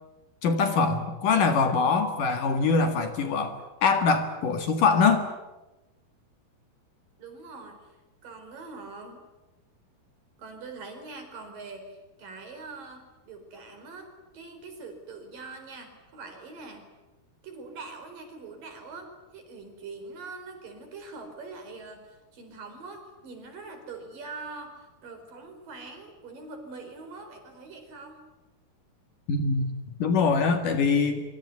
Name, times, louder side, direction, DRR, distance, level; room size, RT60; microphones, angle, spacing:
voice 1, 0.4-5.3 29.3-29.7 30.0-31.2, left 4 dB, 60° left, 7 dB, 3.2 m, -23 dB
voice 2, 7.2-7.9 8.2-9.2 10.4-14.1 14.3-16.9 17.4-28.2, right 3 dB, 55° right, 6 dB, 6.2 m, -43 dB
24.5 x 24.5 x 9.6 m, 1.1 s
omnidirectional pair, 4.7 m